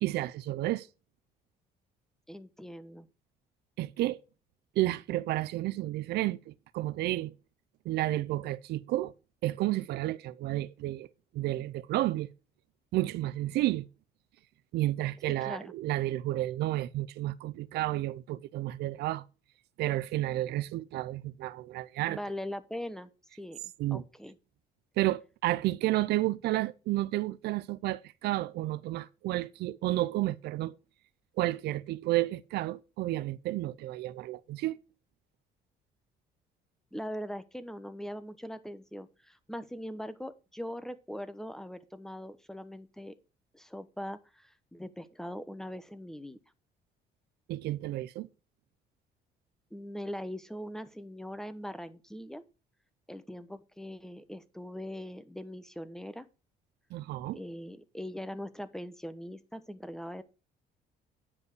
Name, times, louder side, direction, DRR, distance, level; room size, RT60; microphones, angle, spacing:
voice 1, 0.0-0.9 3.8-4.2 4.8-7.3 7.9-9.1 9.4-11.1 11.3-12.3 12.9-13.9 14.7-19.2 19.8-22.2 23.8-24.0 25.0-30.7 31.4-34.8 47.5-48.3 56.9-57.4, right 16 dB, 75° right, 0.5 m, -31 dB
voice 2, 2.3-3.1 15.4-15.7 22.1-23.1 23.4-24.4 36.9-43.1 43.5-46.4 49.7-52.4 53.1-56.3 57.3-60.2, equal, 5° left, 1.0 m, -41 dB
9.8 x 5.3 x 6.1 m
cardioid pair, 110°, 17 cm